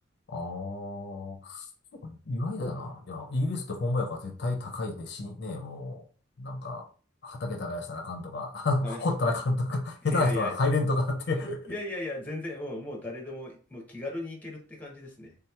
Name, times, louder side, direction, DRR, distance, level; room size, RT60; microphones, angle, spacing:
voice 1, 0.3-1.6 1.9-6.0 6.4-6.9 7.2-11.7, left 2 dB, 55° left, 0.5 m, -30 dB
voice 2, 10.0-10.6 11.3-11.4 11.7-15.4, left 1 dB, 10° left, 0.7 m, -37 dB
3.5 x 2.8 x 2.2 m
head